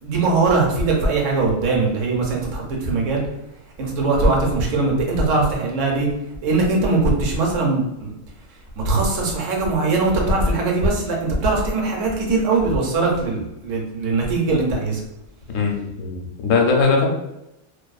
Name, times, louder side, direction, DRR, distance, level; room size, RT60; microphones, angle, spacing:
voice 1, 0.0-3.2 3.8-6.1 6.4-8.1 8.8-15.0, right 3 dB, 70° right, -1 dB, 1.0 m, -20 dB
voice 2, 15.5-17.1, left 4 dB, 75° left, 0 dB, 0.9 m, -20 dB
2.6 x 2.2 x 2.3 m, 0.88 s
omnidirectional pair, 1.4 m